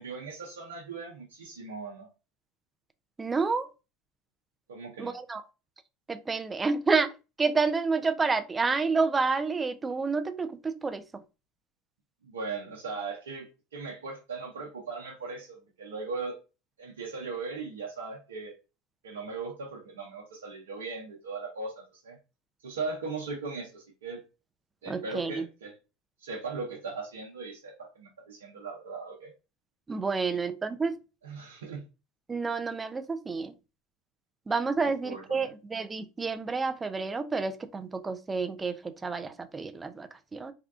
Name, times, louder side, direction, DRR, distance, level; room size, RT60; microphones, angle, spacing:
voice 1, 0.0-2.1 4.7-5.1 12.2-16.4 16.8-18.5 19.0-22.2 22.6-24.2 24.8-25.7 26.2-29.3 30.1-30.4 31.2-31.8 35.0-35.4, right 4 dB, 90° right, 0.7 m, -38 dB
voice 2, 3.2-3.7 5.0-5.4 6.1-7.1 7.4-11.2 24.9-25.5 29.9-31.0 32.3-33.5 34.5-40.5, right 4 dB, 20° right, 0.4 m, -29 dB
3.6 x 2.3 x 2.4 m
hypercardioid pair, 90°, 0 cm